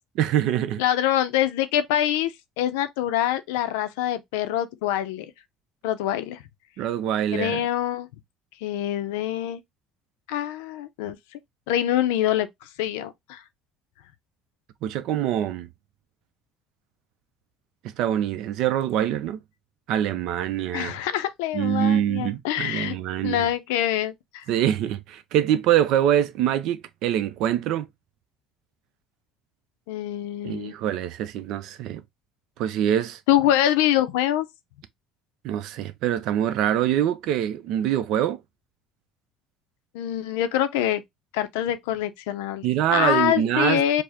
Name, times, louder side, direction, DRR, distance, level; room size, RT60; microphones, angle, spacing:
voice 1, 0.2-0.8 6.8-7.6 14.8-15.7 18.0-19.4 19.9-21.0 21.5-23.5 24.5-27.9 30.4-32.0 32.6-33.2 35.4-38.4 42.6-44.0, right 11 dB, 70° right, 0.4 m, -24 dB
voice 2, 0.8-5.3 5.8-6.4 7.3-8.1 8.6-9.6 10.3-11.2 11.7-12.5 12.8-13.4 20.7-23.0 23.2-24.4 29.9-30.7 33.3-34.5 39.9-41.0 41.3-42.7 42.9-44.0, left 12 dB, 85° left, 0.4 m, -25 dB
4.7 x 2.0 x 2.8 m
supercardioid pair, 85°, 0 cm